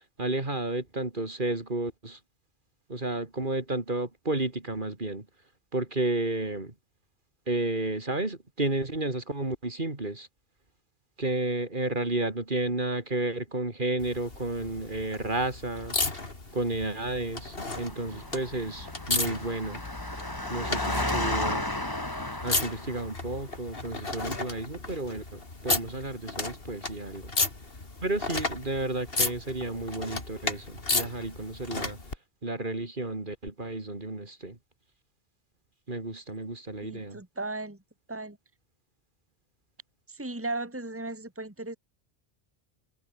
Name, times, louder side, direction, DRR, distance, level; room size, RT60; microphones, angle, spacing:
voice 1, 0.2-2.2 2.9-5.2 5.7-6.7 7.5-10.3 11.2-16.0 16.5-19.8 20.5-21.6 22.4-27.3 28.0-32.0 32.4-34.6 35.9-37.2, right 2 dB, 50° right, 3.1 m, -32 dB
sound 1, 14.0-32.2 33.5-33.6, left 3 dB, 60° left, 3.2 m, -34 dB
Engine, 17.6-23.2, left 1 dB, 20° left, 2.7 m, -33 dB
voice 2, 36.8-37.8 38.1-38.4 40.1-41.8, right 2 dB, 10° right, 2.2 m, -36 dB
omnidirectional pair, 1.1 m